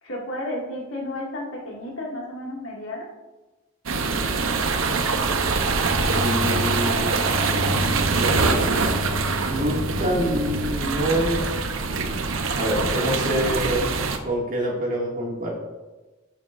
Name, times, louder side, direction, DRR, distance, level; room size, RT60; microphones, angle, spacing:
voice 1, 0.0-3.1, left 1 dB, 85° left, -2 dB, 2.3 m, -32 dB
sound 1, 3.9-14.2, right 4 dB, 90° right, 0.9 m, -24 dB
sound 2, 5.0-12.3, left 2 dB, 10° right, 0.9 m, -33 dB
voice 2, 6.1-7.2 8.1-8.7 9.5-11.4 12.5-13.9 14.2-15.5, equal, 40° right, -3 dB, 2.3 m, -26 dB
12.0 x 7.5 x 2.6 m, 1.2 s
head